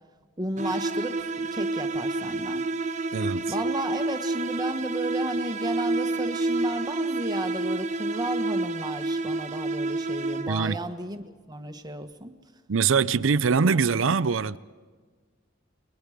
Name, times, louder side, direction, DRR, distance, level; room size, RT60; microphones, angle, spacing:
voice 1, 0.4-2.6 3.5-12.3, right 1 dB, 20° right, 1.4 m, -33 dB
sound 1, 0.6-10.8, right 2 dB, 40° right, 1.1 m, -29 dB
voice 2, 3.1-3.5 10.5-10.8 12.7-14.6, right 5 dB, 90° right, 0.6 m, -23 dB
30.0 x 22.0 x 5.1 m
head